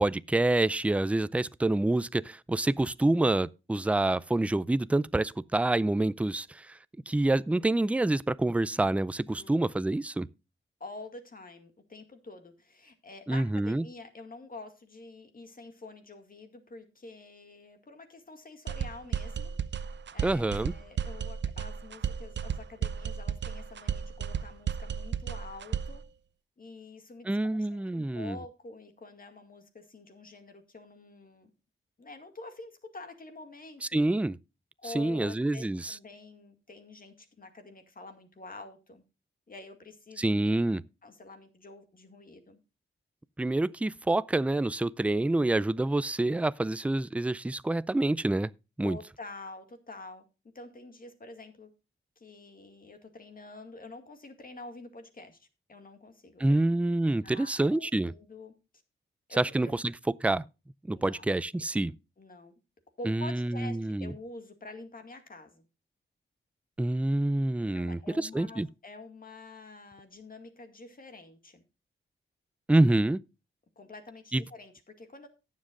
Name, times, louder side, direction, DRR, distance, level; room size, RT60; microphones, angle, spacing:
voice 1, 0.0-6.8 7.1-10.3 13.3-13.8 20.2-20.7 27.3-28.4 33.9-34.4 34.9-36.0 40.2-40.8 43.4-48.5 48.8-49.0 56.4-58.1 59.4-59.9 60.2-60.4 60.9-61.9 63.0-64.1 66.8-68.7 72.7-73.2 74.3-74.4, right 2 dB, 5° right, 0.4 m, -27 dB
voice 2, 9.2-9.6 10.8-19.5 20.1-26.0 26.6-31.5 32.0-34.0 34.8-39.0 39.5-40.7 41.0-42.6 45.8-46.1 48.8-50.2 50.5-51.7 52.2-56.6 57.0-58.5 59.3-59.7 60.9-61.3 62.2-62.5 63.0-65.6 67.7-71.6 73.8-75.3, left 3 dB, 45° left, 2.0 m, -47 dB
sound 1, 18.7-26.0, right 7 dB, 60° right, 0.6 m, -34 dB
18.0 x 7.5 x 2.5 m
cardioid pair, 70°, 20 cm